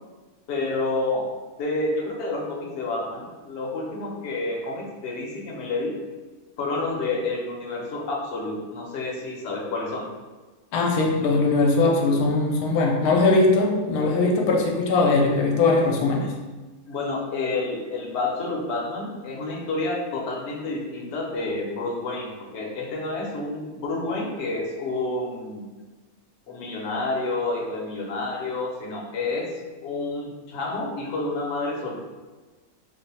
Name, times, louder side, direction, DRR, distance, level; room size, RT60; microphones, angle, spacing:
voice 1, 0.5-1.3 1.6-6.0 6.6-10.1 16.9-25.7 26.5-29.5 29.8-32.1, left 2 dB, 60° left, -1 dB, 0.8 m, -29 dB
voice 2, 10.7-16.3, left 3 dB, 90° left, 0 dB, 1.1 m, -20 dB
3.0 x 2.1 x 4.1 m, 1.3 s
omnidirectional pair, 1.6 m